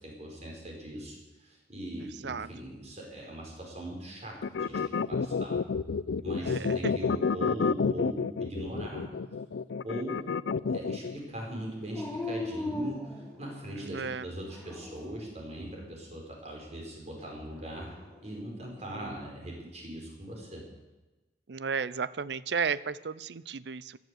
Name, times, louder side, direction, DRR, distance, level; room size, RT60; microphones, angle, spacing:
voice 1, 0.0-5.6 6.2-9.1 9.8-10.2 10.7-20.6, right 1 dB, 40° right, 0 dB, 5.1 m, -40 dB
sound 1, 4.4-11.2, left 5 dB, 85° left, 0.5 m, -29 dB
voice 2, 6.4-6.9 13.8-14.3 18.9-19.1 21.5-24.0, right 6 dB, 70° right, 18 dB, 0.5 m, -34 dB
Dog, 11.9-13.8 14.5-15.3 17.5-18.4, left 2 dB, 5° left, 3.2 m, -38 dB
14.5 x 12.0 x 7.9 m, 1.1 s
head